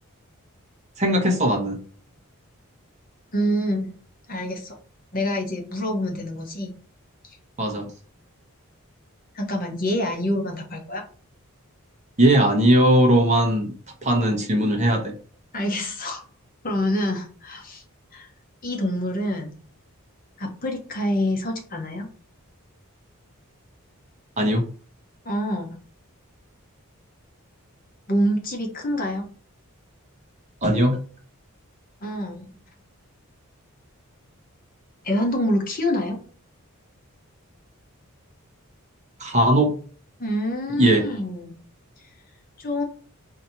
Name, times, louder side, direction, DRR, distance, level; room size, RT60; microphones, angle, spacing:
voice 1, 1.0-1.8 7.6-7.9 12.2-13.7 14.0-15.1 24.4-24.7 30.6-31.0 39.2-39.7 40.8-41.1, right 1 dB, 30° right, 3 dB, 0.9 m, -19 dB
voice 2, 3.3-3.9 4.3-4.8 5.1-6.7 7.2-7.4 9.3-11.0 15.5-16.2 16.6-17.8 18.1-18.3 18.6-19.5 20.4-22.1 25.2-25.8 28.1-29.3 32.0-32.5 35.0-36.2 40.2-41.6 42.6-42.8, equal, 40° left, 2 dB, 1.0 m, -26 dB
4.2 x 2.8 x 4.4 m, 0.41 s
head